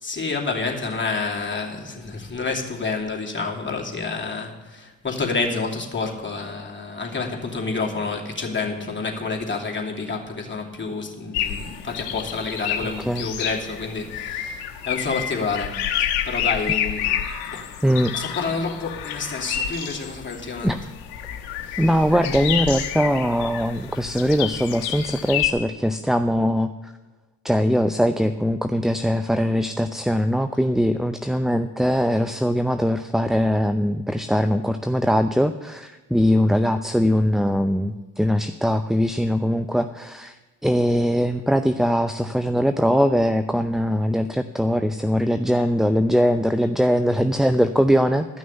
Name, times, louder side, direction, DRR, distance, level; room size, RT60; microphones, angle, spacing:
voice 1, 0.0-17.2 17.5-17.7 18.1-20.9 21.6-22.0, left 4 dB, 25° left, -1 dB, 2.8 m, -29 dB
sound 1, 11.3-25.5, left 10 dB, 75° left, 1.2 m, -29 dB
voice 2, 17.8-18.1 20.6-20.8 21.8-26.9 27.4-40.4 40.6-48.3, equal, ahead, 9 dB, 0.5 m, -21 dB
13.0 x 6.2 x 8.0 m, 1.2 s
hypercardioid pair, 50°, 42 cm